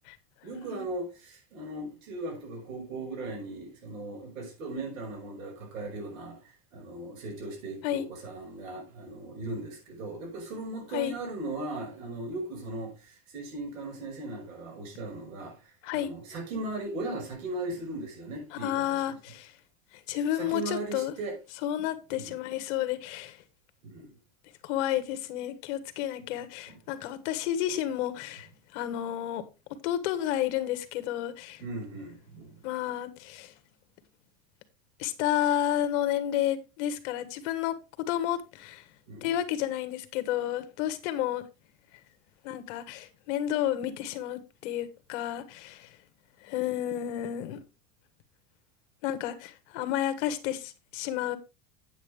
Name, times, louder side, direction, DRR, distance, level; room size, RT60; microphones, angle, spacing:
voice 1, 0.4-15.6 15.8-19.1 20.4-21.4 22.1-22.3 23.8-24.1 26.7-26.8 31.6-32.6 39.1-39.3, right 2 dB, 90° right, 5.8 m, -38 dB
voice 2, 18.5-19.5 19.9-21.1 21.6-23.4 24.6-29.4 29.8-31.6 32.6-33.5 35.0-38.8 39.2-41.4 42.4-46.0 46.4-47.6 49.0-51.4, left 12 dB, 65° left, 1.6 m, -31 dB
8.9 x 8.8 x 3.5 m
supercardioid pair, 155°, 39 cm